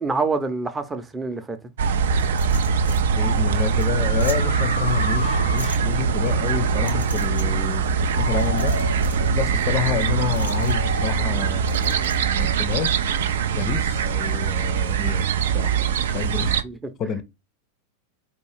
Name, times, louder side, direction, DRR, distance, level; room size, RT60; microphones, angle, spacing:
voice 1, 0.0-1.6 16.6-16.8, right 4 dB, 15° right, 0.6 m, -26 dB
sound 1, 1.8-16.6, right 6 dB, 60° right, 0.3 m, -22 dB
sound 2, 2.2-3.0 3.4-3.5 3.8-3.9 4.2-4.4 5.6-5.8 6.8-7.4 8.4-9.2 10.3-10.7 11.7-12.2, right 1 dB, 85° right, 0.9 m, -38 dB
sound 3, 2.7-2.8 3.6-6.0 7.8-9.0 10.0-11.1, left 2 dB, 80° left, 0.5 m, -33 dB
voice 2, 2.9-7.9 8.1-8.8 9.3-13.0 13.5-15.3 15.5-15.8 16.1-16.5 17.0-17.2, left 8 dB, 30° left, 0.5 m, -29 dB
4.6 x 2.4 x 3.2 m
figure-of-eight pair, 90°, 0 cm